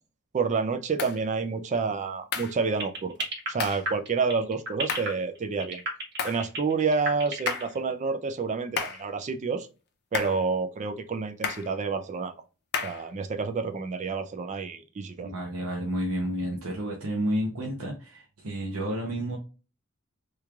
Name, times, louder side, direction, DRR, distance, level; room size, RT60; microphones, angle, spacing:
voice 1, 0.3-3.1 3.5-5.8 6.2-9.7 10.1-12.3 12.8-15.3, right 4 dB, 35° right, 0.3 m, -29 dB
sound 1, 1.0-1.2 2.3-2.6 3.6-3.9 4.9-5.2 6.2-6.5 7.5-7.8 8.8-9.1 10.1-10.4 11.4-11.7 12.7-13.1, left 6 dB, 50° left, 0.6 m, -32 dB
sound 2, 2.8-7.8, right 2 dB, 55° right, 1.1 m, -32 dB
voice 2, 15.2-19.4, right 1 dB, 70° right, 0.7 m, -31 dB
3.4 x 3.1 x 2.3 m
head